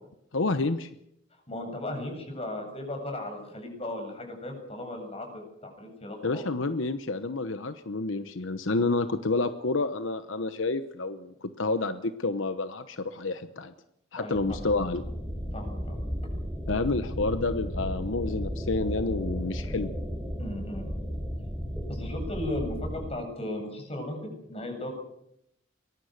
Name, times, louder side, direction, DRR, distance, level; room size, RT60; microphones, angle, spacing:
voice 1, 0.3-0.9 6.2-13.7 14.1-15.0 16.7-19.9, left 3 dB, 80° left, 11 dB, 1.0 m, -29 dB
voice 2, 1.5-6.4 14.2-14.6 15.5-16.0 20.4-20.8 21.9-24.9, left 1 dB, 30° left, 3 dB, 7.8 m, -36 dB
sound 1, 14.3-23.0, equal, ahead, 5.9 m, -34 dB
24.0 x 22.0 x 6.6 m, 0.80 s
head